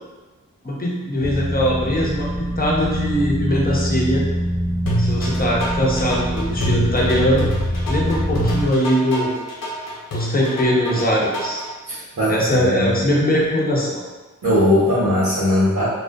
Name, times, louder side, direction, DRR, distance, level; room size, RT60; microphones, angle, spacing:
voice 1, 0.6-4.2 5.0-7.5 7.9-9.3 10.1-11.6 12.3-14.0, equal, 25° left, -4 dB, 0.8 m, -21 dB
sound 1, 1.2-8.7, equal, 25° right, 0.9 m, -24 dB
sound 2, 4.9-11.7, equal, 80° left, 0.7 m, -26 dB
voice 2, 11.9-13.0 14.4-15.9, left 1 dB, 75° right, -11 dB, 0.9 m, -19 dB
2.4 x 2.3 x 2.3 m, 1.2 s
cardioid pair, 45°, 33 cm